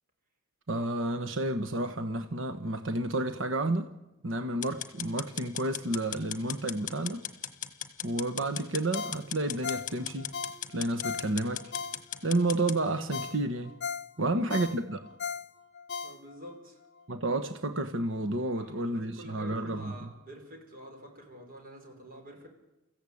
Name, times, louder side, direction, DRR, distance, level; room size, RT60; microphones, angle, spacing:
voice 1, 0.7-3.9 4.2-7.2 8.0-10.3 10.7-11.7 12.2-13.7 14.2-15.0 17.1-20.1, right 2 dB, 65° right, 1.2 m, -31 dB
sound 1, 4.6-12.8, left 10 dB, 40° left, 1.4 m, -38 dB
Ringtone, 8.9-12.4 12.8-12.9 13.1-16.6 17.0-17.1, left 6 dB, 55° left, 0.9 m, -38 dB
voice 2, 14.2-14.5 16.0-16.8 18.5-22.5, equal, 45° right, 5.5 m, -48 dB
29.5 x 15.0 x 8.5 m
head